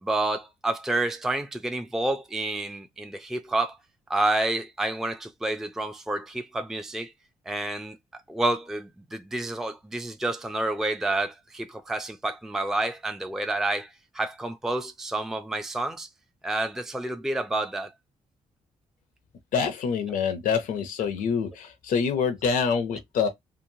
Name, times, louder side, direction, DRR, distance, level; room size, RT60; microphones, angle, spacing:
voice 1, 0.0-3.8 4.1-7.1 7.5-16.1 16.4-17.9 20.1-20.2, right 2 dB, 5° right, 0.4 m, -29 dB
voice 2, 19.5-23.3, left 6 dB, 80° left, 0.5 m, -26 dB
2.9 x 2.2 x 2.6 m
cardioid pair, 75°, 14 cm